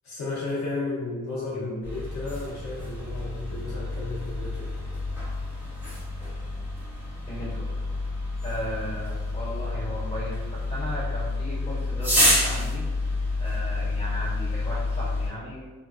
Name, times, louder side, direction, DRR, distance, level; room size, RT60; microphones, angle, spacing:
voice 1, 0.0-4.7, left 3 dB, 65° left, -6 dB, 0.6 m, -33 dB
voice 2, 1.5-1.8 7.3-7.7 8.4-12.9 13.4-15.7, equal, 20° left, -9 dB, 1.3 m, -36 dB
sound 1, 1.8-15.3, left 2 dB, 5° right, 1.0 m, -29 dB
3.1 x 2.3 x 2.3 m, 1.3 s
wide cardioid pair, 145°, 30 cm